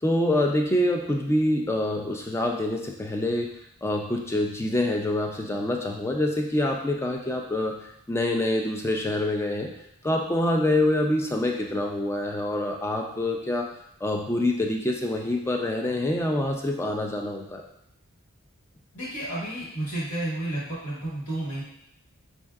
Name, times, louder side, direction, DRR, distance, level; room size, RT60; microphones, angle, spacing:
voice 1, 0.0-3.5 3.8-9.7 10.0-13.7 14.0-17.6, left 1 dB, 10° left, 1 dB, 0.3 m, -26 dB
voice 2, 18.9-21.6, right 1 dB, 60° left, -12 dB, 1.5 m, -31 dB
5.3 x 2.6 x 2.3 m, 0.77 s
head